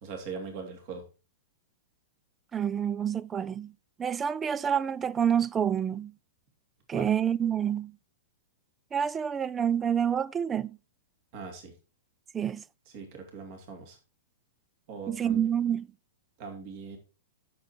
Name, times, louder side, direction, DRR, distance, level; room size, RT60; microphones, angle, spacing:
voice 1, 0.0-1.0 6.9-7.1 11.3-11.7 12.9-14.0 14.9-15.4 16.4-17.0, right 5 dB, 45° right, 3.0 m, -41 dB
voice 2, 2.5-3.7 4.0-6.1 6.9-7.9 8.9-10.8 12.3-12.6 15.1-15.9, right 8 dB, 20° right, 0.4 m, -28 dB
12.5 x 7.0 x 4.5 m
figure-of-eight pair, 105°, 0 cm